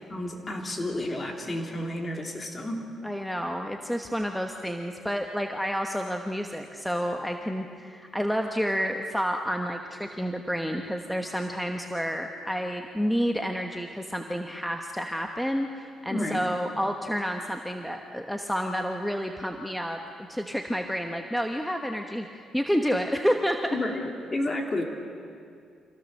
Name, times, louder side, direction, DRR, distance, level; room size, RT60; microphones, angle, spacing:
voice 1, 0.1-2.9 16.1-16.5 23.7-24.0 24.3-24.8, left 1 dB, 30° left, 2 dB, 3.0 m, -31 dB
voice 2, 3.0-20.0 20.3-23.8, equal, ahead, 4 dB, 1.2 m, -29 dB
26.0 x 16.0 x 6.6 m, 2.3 s
cardioid pair, 90°, 0 cm